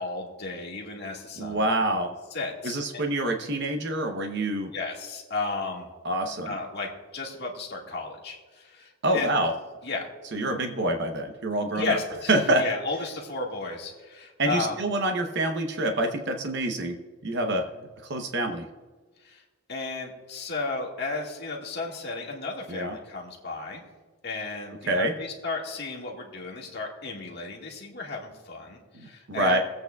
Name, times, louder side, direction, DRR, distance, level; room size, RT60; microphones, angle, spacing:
voice 1, 0.0-1.7 2.3-3.0 4.7-5.9 6.4-9.3 9.8-10.1 11.7-14.8 19.2-19.4 19.7-23.8 24.2-29.6, left 3 dB, 50° left, -1 dB, 1.7 m, -34 dB
voice 2, 1.4-2.1 2.6-4.7 6.0-6.5 9.0-9.5 10.3-12.0 12.3-12.6 14.4-17.0 17.2-17.7 18.1-18.7 22.7-22.9 24.9-25.1 29.3-29.6, right 1 dB, 50° right, 5 dB, 0.8 m, -26 dB
24.0 x 8.2 x 2.3 m, 1.3 s
head